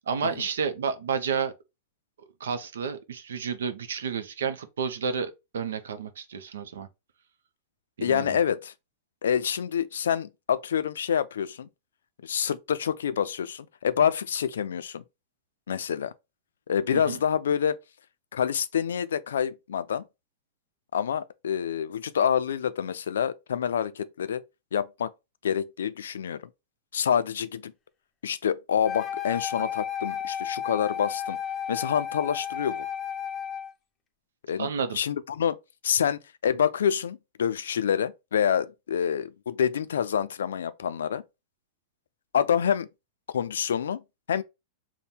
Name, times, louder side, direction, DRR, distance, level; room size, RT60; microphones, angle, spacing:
voice 1, 0.1-1.5 2.4-6.9 8.0-8.4 16.9-17.2 34.6-35.0, right 6 dB, 85° right, 0.6 m, -31 dB
voice 2, 8.0-8.7 9.2-11.7 12.2-15.0 15.7-16.1 16.7-17.8 18.3-20.0 20.9-24.4 24.7-25.1 25.4-26.4 26.9-27.7 28.2-31.4 31.7-32.9 34.5-34.7 34.9-35.6 35.8-41.2 42.3-42.9 43.3-44.0 44.3-44.4, left 8 dB, 85° left, 0.4 m, -27 dB
Wind instrument woodwind instrument, 28.8-33.7, left 8 dB, 25° left, 0.5 m, -33 dB
3.5 x 2.1 x 4.2 m
hypercardioid pair, 115°, 0 cm